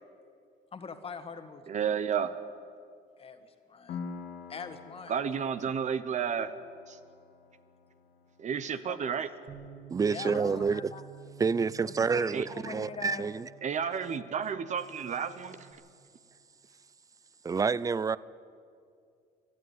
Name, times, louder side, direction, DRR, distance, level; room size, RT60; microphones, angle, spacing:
voice 1, 0.7-1.6 3.2-4.0 4.5-5.5 8.7-9.0 10.1-11.0 12.1-13.3, left 5 dB, 35° left, 1.9 m, -43 dB
voice 2, 1.7-2.3 5.1-6.5 6.9-7.0 8.4-9.3 12.3-12.4 13.6-15.6, right 7 dB, 45° right, 1.0 m, -31 dB
Piano, 3.9-11.3, left 5 dB, 70° left, 2.1 m, -48 dB
Bass guitar, 9.5-15.7, right 8 dB, 70° right, 7.3 m, -51 dB
voice 3, 9.9-10.9 11.4-13.5 17.4-18.2, right 5 dB, 20° right, 0.5 m, -28 dB
28.0 x 11.0 x 9.6 m
cardioid pair, 110°, 17 cm